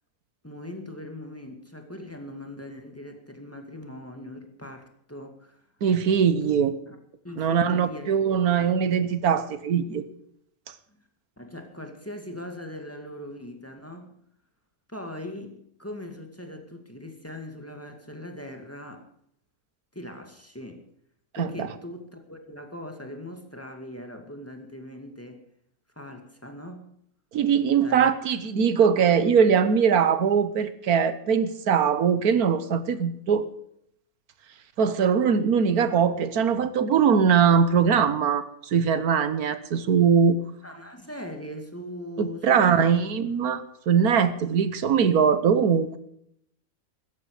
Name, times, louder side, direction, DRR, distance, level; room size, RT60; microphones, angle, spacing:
voice 1, 0.4-5.6 6.4-6.6 6.9-7.0 7.2-8.4 11.4-14.1 14.9-19.1 19.9-20.9 21.3-25.4 26.0-26.9 27.8-28.2 40.6-42.9 43.5-43.6, left 1 dB, 10° left, 4 dB, 2.2 m, -40 dB
voice 2, 5.8-6.7 7.4-10.0 21.4-21.7 27.3-33.5 34.8-40.4 42.2-46.0, right 7 dB, 85° right, 13 dB, 1.6 m, -21 dB
17.0 x 13.5 x 5.0 m, 0.70 s
omnidirectional pair, 1.5 m